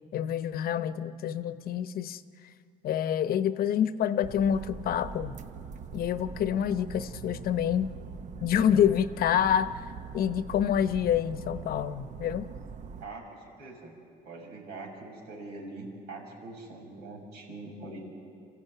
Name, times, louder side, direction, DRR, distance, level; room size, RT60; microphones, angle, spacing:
voice 1, 0.1-2.2 2.8-5.4 5.9-7.9 8.4-9.9 10.1-12.5, left 9 dB, 60° left, 12 dB, 0.9 m, -27 dB
sound 1, 4.2-13.1, right 6 dB, 45° right, 0.8 m, -42 dB
voice 2, 13.0-13.9 14.2-18.0, right 2 dB, 80° right, 0 dB, 6.3 m, -43 dB
27.0 x 15.0 x 9.3 m, 2.3 s
cardioid pair, 110°, 17 cm